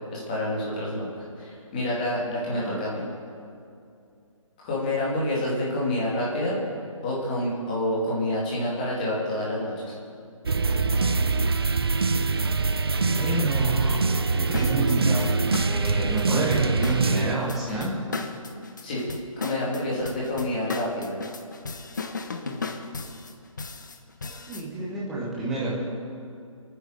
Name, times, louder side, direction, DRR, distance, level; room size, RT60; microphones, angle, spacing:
voice 1, 0.1-3.0 4.6-6.6 7.0-9.9 18.8-19.0 19.4-21.2, left 1 dB, 15° left, -6 dB, 2.6 m, -28 dB
voice 2, 2.5-2.8 13.1-14.0 14.3-15.3 15.6-18.0 24.2-25.8, right 2 dB, ahead, -7 dB, 0.8 m, -28 dB
sound 1, 10.5-17.4, right 4 dB, 45° right, 0.6 m, -24 dB
sound 2, 14.5-24.7, left 4 dB, 35° left, 1.0 m, -36 dB
22.5 x 9.5 x 6.7 m, 2.4 s
hypercardioid pair, 175°, 18 cm